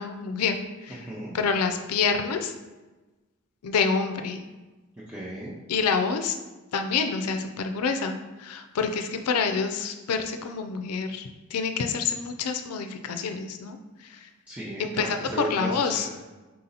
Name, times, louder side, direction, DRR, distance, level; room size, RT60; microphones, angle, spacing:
voice 1, 0.0-1.1 1.3-2.5 3.6-4.4 5.7-6.4 6.7-13.8 14.0-14.3 14.8-16.1, left 5 dB, 90° left, 6 dB, 0.4 m, -27 dB
voice 2, 1.0-1.4 5.1-5.5 14.5-16.1, right 1 dB, 5° right, -8 dB, 0.5 m, -35 dB
3.8 x 2.8 x 3.9 m, 1.2 s
head